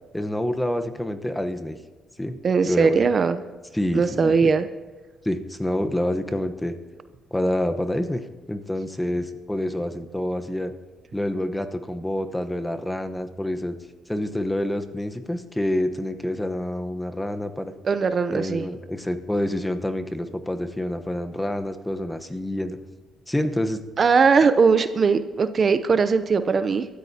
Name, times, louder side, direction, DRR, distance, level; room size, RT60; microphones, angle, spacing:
voice 1, 0.1-1.8 2.2-2.4 2.6-3.1 3.7-4.5 5.2-6.7 7.3-10.7 11.1-13.8 14.1-17.7 18.3-22.8 23.3-23.8, left 1 dB, 10° left, 7 dB, 1.0 m, -27 dB
voice 2, 2.4-3.4 3.9-4.7 17.8-18.7 24.0-26.9, right 5 dB, 45° right, 11 dB, 0.6 m, -20 dB
23.5 x 13.5 x 2.8 m, 1.3 s
cardioid pair, 90°, 0 cm